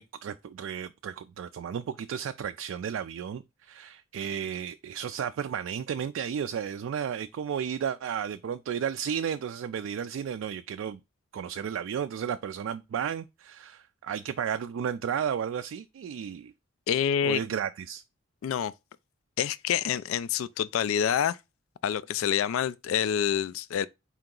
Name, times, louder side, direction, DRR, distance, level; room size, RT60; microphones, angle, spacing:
voice 1, 0.0-11.0 11.3-16.5 17.2-18.0, right 8 dB, 70° right, 0.3 m, -33 dB
voice 2, 16.9-17.4 18.4-18.7 19.4-21.4 21.8-23.9, left 9 dB, 80° left, 0.3 m, -27 dB
4.4 x 2.9 x 3.7 m
head